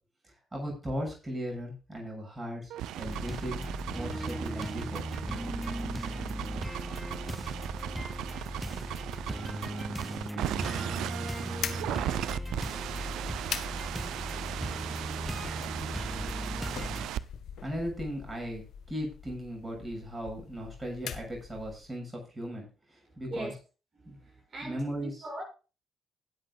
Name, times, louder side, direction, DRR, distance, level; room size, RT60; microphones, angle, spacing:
voice 1, 0.2-3.6 3.9-5.1 17.6-18.6 18.9-23.5 24.1-24.2 24.6-25.2, equal, 20° right, 7.5 m, -37 dB
sound 1, 2.7-17.2, right 12 dB, 70° right, 0.6 m, -37 dB
sound 2, 3.0-17.1, equal, ahead, 0.6 m, -37 dB
sound 3, 11.6-21.9, left 8 dB, 65° left, 1.3 m, -43 dB
voice 2, 24.1-25.4, right 2 dB, 45° right, 7.2 m, -40 dB
21.0 x 8.1 x 2.5 m
hypercardioid pair, 45°, 0 cm